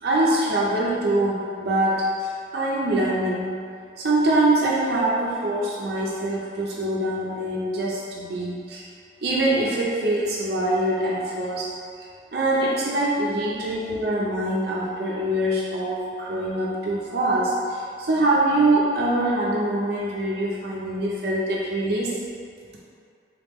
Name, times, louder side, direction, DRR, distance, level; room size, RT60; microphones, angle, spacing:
voice 1, 0.0-3.6 4.0-8.8 9.2-11.7 12.3-22.2, right 1 dB, 60° right, -5 dB, 0.5 m, -24 dB
3.7 x 2.9 x 3.5 m, 2.4 s
head